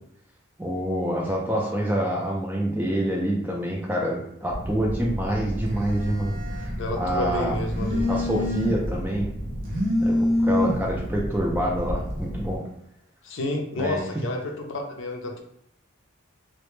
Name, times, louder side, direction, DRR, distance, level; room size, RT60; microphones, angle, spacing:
voice 1, 0.6-6.7 7.0-7.6 8.1-9.3 10.0-12.6 13.8-14.0, equal, 10° right, -3 dB, 0.3 m, -27 dB
Telephone, 4.5-12.6, left 1 dB, 45° right, 0.6 m, -28 dB
voice 2, 6.8-8.0 13.2-15.4, left 1 dB, 60° left, 2 dB, 0.4 m, -30 dB
2.1 x 2.0 x 3.0 m, 0.77 s
head